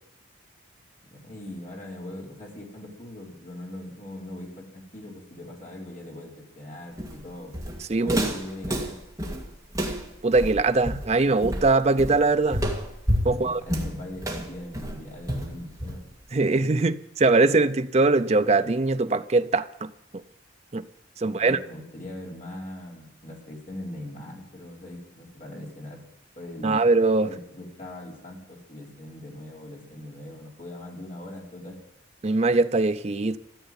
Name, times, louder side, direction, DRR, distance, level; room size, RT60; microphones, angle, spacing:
voice 1, 1.0-7.6 8.0-9.0 13.3-16.0 21.2-26.0 26.4-26.9 27.2-31.8, left 1 dB, 45° left, 4.1 m, -40 dB
Walk footsteps, 7.0-16.2, equal, 15° right, 2.1 m, -30 dB
voice 2, 7.9-8.2 10.2-12.6 13.2-13.6 16.3-19.9 20.7-20.8 21.2-21.6 26.6-27.3 32.2-33.4, right 3 dB, 35° right, 0.5 m, -21 dB
14.0 x 8.0 x 9.8 m
head